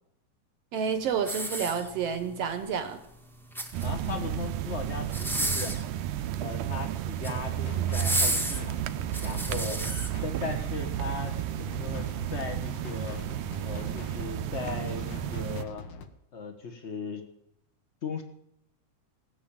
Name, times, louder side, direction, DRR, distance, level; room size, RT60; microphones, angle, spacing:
voice 1, 0.7-3.0, right 7 dB, 65° right, 9 dB, 1.6 m, -29 dB
sound 1, 1.2-2.2 3.3-4.1 5.0-5.9 7.0-7.4 7.9-10.1 10.7-10.8, right 1 dB, 5° left, 0.3 m, -31 dB
sound 2, 3.7-15.6, right 12 dB, 85° right, 2.2 m, -32 dB
voice 2, 3.8-5.8 6.4-8.8 9.2-9.8 10.2-13.2 13.6-15.8 16.3-17.2 18.0-18.2, left 4 dB, 55° left, 5 dB, 0.7 m, -37 dB
sound 3, 7.6-16.1, left 3 dB, 75° left, 1.0 m, -44 dB
18.0 x 7.1 x 8.7 m, 0.78 s
omnidirectional pair, 3.6 m